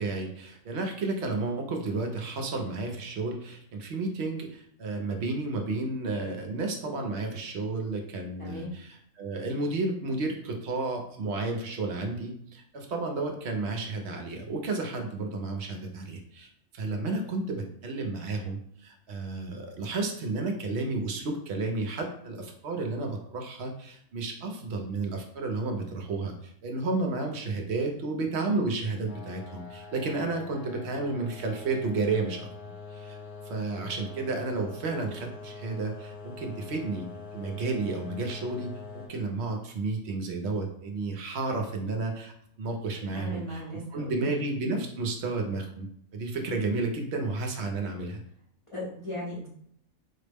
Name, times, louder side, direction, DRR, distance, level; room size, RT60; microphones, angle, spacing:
voice 1, 0.0-16.5 16.7-32.5 32.9-33.2 33.4-37.1 37.3-43.6 43.9-48.2, right 3 dB, 60° right, 3 dB, 0.7 m, -32 dB
voice 2, 8.4-8.7 43.1-44.4 48.7-49.5, equal, 35° left, -6 dB, 0.6 m, -37 dB
sound 1, 29.1-39.1, left 4 dB, 85° left, 1.3 m, -44 dB
4.1 x 2.0 x 3.3 m, 0.69 s
omnidirectional pair, 1.5 m